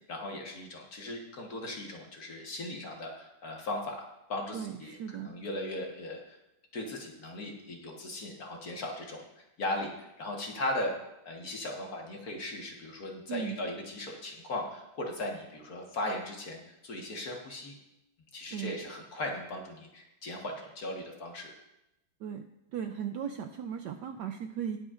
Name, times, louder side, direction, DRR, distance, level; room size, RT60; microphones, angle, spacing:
voice 1, 0.1-4.0 4.3-6.2 6.7-9.2 9.6-10.9 11.3-17.7 18.3-21.5, left 1 dB, 50° left, 1 dB, 1.7 m, -37 dB
voice 2, 4.5-5.4 13.3-13.6 18.5-18.7 22.2-22.4 22.7-24.8, right 8 dB, 75° right, 6 dB, 1.0 m, -37 dB
19.5 x 8.0 x 2.5 m, 0.90 s
omnidirectional pair, 2.3 m